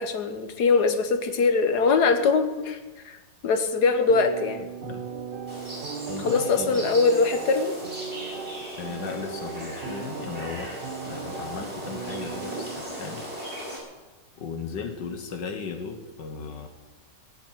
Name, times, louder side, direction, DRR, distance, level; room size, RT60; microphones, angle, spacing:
voice 1, 0.0-2.8 3.0-3.2 3.4-4.6 6.2-7.8, left 4 dB, 65° left, 8 dB, 1.8 m, -22 dB
sound 1, 4.1-12.8, right 7 dB, 80° right, 0.4 m, -38 dB
voice 2, 4.6-5.0 6.1-6.9 8.8-10.8 11.1-13.2 14.4-16.7, left 5 dB, 80° left, 6 dB, 1.8 m, -36 dB
sound 2, 5.5-13.8, right 1 dB, 35° right, 4.8 m, -38 dB
16.5 x 6.8 x 9.0 m, 1.2 s
omnidirectional pair, 1.9 m